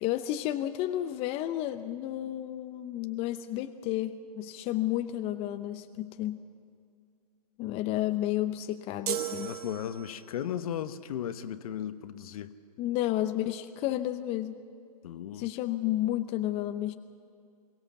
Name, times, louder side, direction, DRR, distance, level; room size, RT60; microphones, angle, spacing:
voice 1, 0.0-6.4 7.6-9.5 12.8-14.7 15.3-16.9, left 13 dB, 30° left, 0.7 m, -31 dB
sound 1, 9.1-10.4, right 10 dB, 70° right, 1.3 m, -35 dB
voice 2, 9.4-12.5 15.0-15.5, left 10 dB, 60° left, 1.0 m, -36 dB
23.0 x 18.0 x 7.1 m
hypercardioid pair, 130°, 20 cm